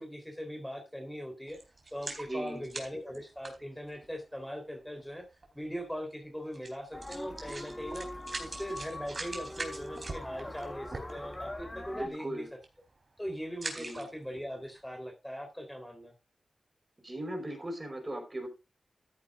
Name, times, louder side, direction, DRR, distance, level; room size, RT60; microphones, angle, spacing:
voice 1, 0.0-1.6 1.9-5.2 5.5-8.1 8.4-12.4 13.2-16.1, equal, 5° left, 4 dB, 3.7 m, -40 dB
sound 1, 1.5-4.2 5.0-5.1 5.4-5.5 6.5-6.7 7.0-11.5 12.0-12.2 12.5-12.9 13.4-14.4 14.8-14.9, right 3 dB, 50° right, 4.0 m, -42 dB
voice 2, 2.3-2.6 11.9-12.5 13.7-14.1 17.0-18.5, right 1 dB, 30° right, 4 dB, 4.8 m, -38 dB
sound 2, 6.9-12.1, left 1 dB, 25° left, 1.5 m, -42 dB
13.5 x 9.5 x 2.5 m, 0.28 s
cardioid pair, 50°, 0 cm